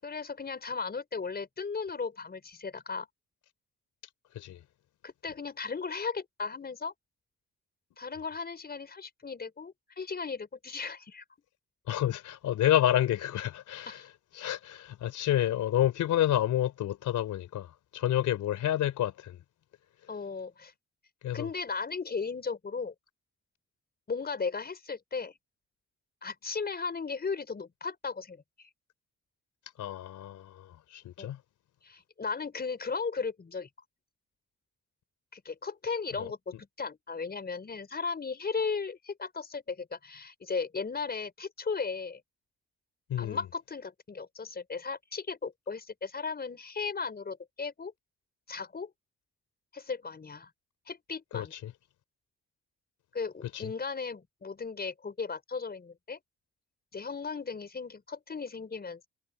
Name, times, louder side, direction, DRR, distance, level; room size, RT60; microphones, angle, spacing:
voice 1, 0.0-3.1 5.0-6.9 8.0-11.2 13.9-14.1 20.1-20.7 21.3-22.9 24.1-25.3 26.2-28.7 31.2-31.3 31.8-33.7 35.3-42.2 43.2-47.9 48.5-48.9 49.7-50.5 50.9-51.5 53.1-56.2 56.9-59.1, left 5 dB, 30° left, 5.4 m, -36 dB
voice 2, 11.9-14.0 14.3-19.4 21.2-21.5 29.8-31.4 36.2-36.3 43.1-43.4 51.3-51.7 53.5-53.7, left 12 dB, 75° left, 3.5 m, -29 dB
cardioid pair, 90°, 30 cm